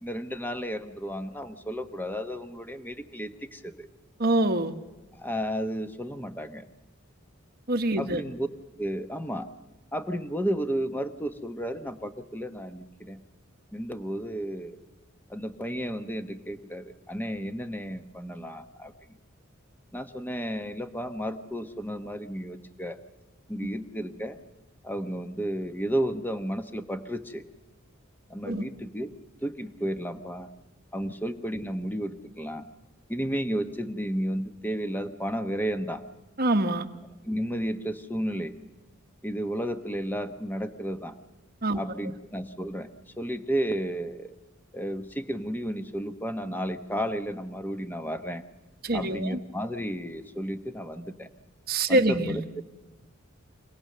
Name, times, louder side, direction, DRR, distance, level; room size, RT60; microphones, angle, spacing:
voice 1, 0.0-3.9 5.1-6.7 8.0-8.5 8.8-9.5 9.9-13.2 13.7-14.8 15.3-18.9 19.9-23.0 23.5-24.4 24.8-27.4 28.3-29.1 29.4-30.5 30.9-32.7 33.1-36.0 37.2-38.5 39.2-41.2 41.7-42.9 43.2-44.3 44.7-48.4 48.9-51.3 51.9-52.4, equal, 10° left, 9 dB, 0.9 m, -32 dB
voice 2, 4.2-4.7 7.7-8.2 28.5-28.6 36.4-36.9 41.6-41.8 48.8-49.4 51.7-52.4, right 1 dB, 45° right, 6 dB, 1.2 m, -25 dB
26.0 x 18.0 x 6.7 m, 1.1 s
head